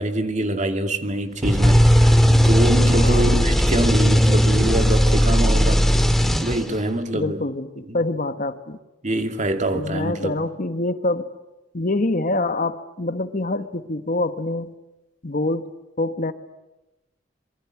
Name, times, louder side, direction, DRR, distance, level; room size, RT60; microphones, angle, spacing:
voice 1, 0.0-5.8 6.4-7.4 7.9-8.0 9.0-10.4, right 1 dB, 40° right, 7 dB, 2.5 m, -25 dB
sound 1, 1.4-6.9, equal, ahead, 1.8 m, -17 dB
voice 2, 2.9-3.4 7.1-8.8 9.7-11.3 11.7-14.7 15.2-15.7 16.0-16.3, left 2 dB, 45° left, 10 dB, 1.3 m, -25 dB
26.5 x 23.0 x 9.5 m, 0.97 s
head